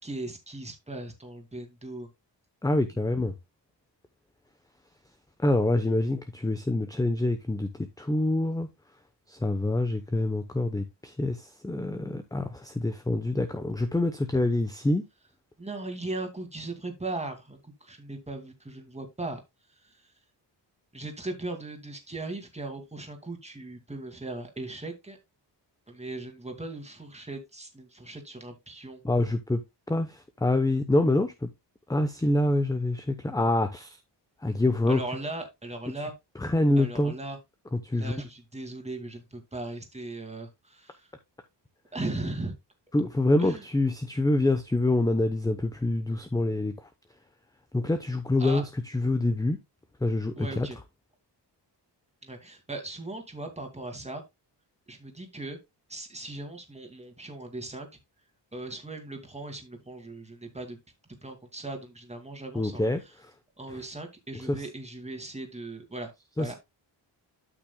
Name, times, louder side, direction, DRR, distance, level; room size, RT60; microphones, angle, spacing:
voice 1, 0.0-2.1 15.6-19.4 19.8-20.1 20.9-25.2 25.9-29.0 34.9-36.1 36.8-37.4 37.9-41.1 41.9-42.5 43.4-43.6 48.4-48.6 50.4-50.8 52.2-54.2 54.9-55.6 55.9-57.9 58.5-60.8 61.2-63.1 63.6-66.1 66.4-66.5, right 2 dB, 15° right, 2.3 m, -38 dB
voice 2, 2.6-3.3 5.4-8.7 9.3-15.0 29.0-29.6 29.9-31.5 31.9-34.0 34.4-35.0 36.4-37.1 37.7-38.1 42.9-46.7 47.7-49.6 50.0-50.7 62.5-63.0 63.7-63.8 64.5-64.6 66.4-66.5, left 2 dB, 10° left, 0.8 m, -26 dB
12.5 x 6.0 x 2.2 m
wide cardioid pair, 105°, 43 cm